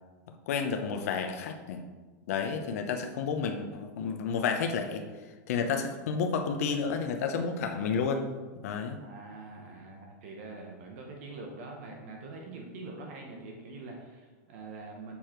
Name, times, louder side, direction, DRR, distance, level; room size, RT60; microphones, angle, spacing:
voice 1, 0.5-1.8 2.3-5.0 5.5-8.3 8.6-9.0, left 5 dB, 55° left, 5 dB, 0.7 m, -31 dB
voice 2, 9.0-15.2, right 3 dB, 45° right, 1 dB, 1.1 m, -44 dB
7.0 x 4.8 x 4.4 m, 1.3 s
supercardioid pair, 175°, 10 cm